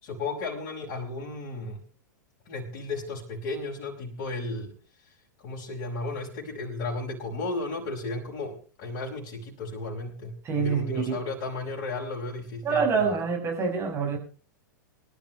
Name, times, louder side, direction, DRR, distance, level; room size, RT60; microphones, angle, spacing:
voice 1, 0.0-1.8 2.5-4.7 5.1-5.2 5.4-13.2, left 3 dB, 40° left, -3 dB, 5.2 m, -34 dB
voice 2, 10.4-11.1 12.6-14.2, right 5 dB, 25° right, 2 dB, 5.9 m, -26 dB
24.0 x 12.0 x 3.1 m, 0.36 s
figure-of-eight pair, 100°, 10 cm